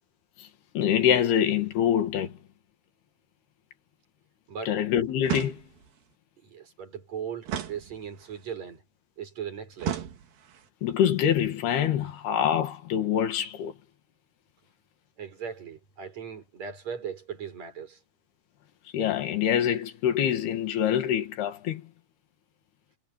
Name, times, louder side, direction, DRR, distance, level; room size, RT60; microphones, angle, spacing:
voice 1, 0.8-2.3 4.7-5.6 10.8-13.7 18.9-21.8, left 9 dB, 70° left, 3.8 m, -25 dB
sound 1, 5.2-6.0 7.5-8.4 9.8-10.7, right 10 dB, 60° right, 3.5 m, -34 dB
voice 2, 6.4-8.8 9.2-10.1 15.2-18.0, right 7 dB, 40° right, 6.8 m, -38 dB
omnidirectional pair, 4.9 m